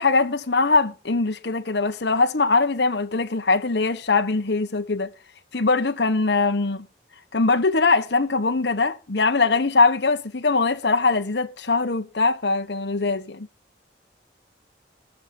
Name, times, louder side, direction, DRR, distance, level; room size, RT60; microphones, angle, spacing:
voice 1, 0.0-5.1 5.5-6.9 7.3-13.5, left 3 dB, 65° left, 1.1 m, -22 dB
19.5 x 7.4 x 5.2 m
head